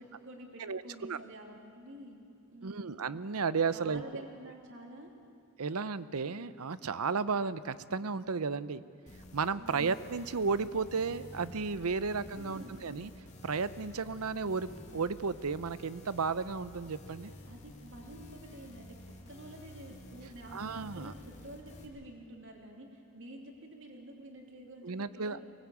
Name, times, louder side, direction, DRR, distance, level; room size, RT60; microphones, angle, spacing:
voice 1, 0.0-3.0 3.7-5.1 9.6-9.9 12.1-12.8 17.5-25.4, right 1 dB, 60° right, 1 dB, 3.1 m, -49 dB
voice 2, 0.6-1.2 2.6-4.2 5.6-8.8 9.3-13.1 13.4-17.3 20.5-21.1 24.8-25.4, right 5 dB, 90° right, 15 dB, 0.7 m, -33 dB
sound 1, 9.1-21.9, left 1 dB, 35° left, 2.6 m, -51 dB
23.5 x 19.5 x 8.5 m, 2.3 s
head